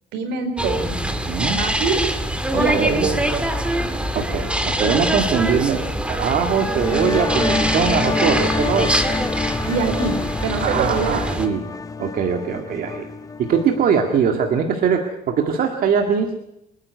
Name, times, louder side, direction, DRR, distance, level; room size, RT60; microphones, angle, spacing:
voice 1, 0.1-1.0 1.6-2.0 2.5-3.4 9.7-11.4, right 5 dB, 90° right, 6 dB, 4.6 m, -25 dB
sound 1, 0.6-11.5, right 1 dB, 5° right, 2.0 m, -24 dB
voice 2, 1.1-1.6 2.5-3.1 4.1-9.0 9.8-9.9 10.6-11.6 12.0-13.1 13.4-16.3, right 6 dB, 60° right, 3 dB, 2.0 m, -21 dB
sound 2, 6.6-14.0, left 4 dB, 20° left, 0.7 m, -27 dB
28.5 x 9.8 x 9.3 m, 0.85 s
cardioid pair, 110°, 17 cm